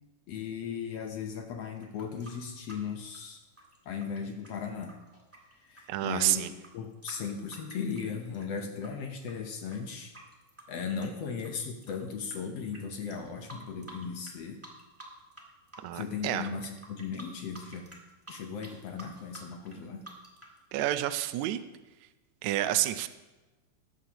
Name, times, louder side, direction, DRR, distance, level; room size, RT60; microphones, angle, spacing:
voice 1, 0.3-3.4 3.8-4.9 5.5-10.1 10.7-14.6 15.9-17.9 18.3-20.0, left 6 dB, 70° left, 4 dB, 1.6 m, -37 dB
Water Drop Faucet, 1.8-8.9 9.2-12.3 12.7-12.8 13.1-14.4 14.6-15.4 15.7-20.6, right 1 dB, 10° right, 0.8 m, -50 dB
voice 2, 5.9-6.5 15.8-16.5 20.7-21.6 22.4-23.1, right 14 dB, 80° right, 11 dB, 1.6 m, -29 dB
21.0 x 7.3 x 2.9 m, 1.1 s
omnidirectional pair, 3.8 m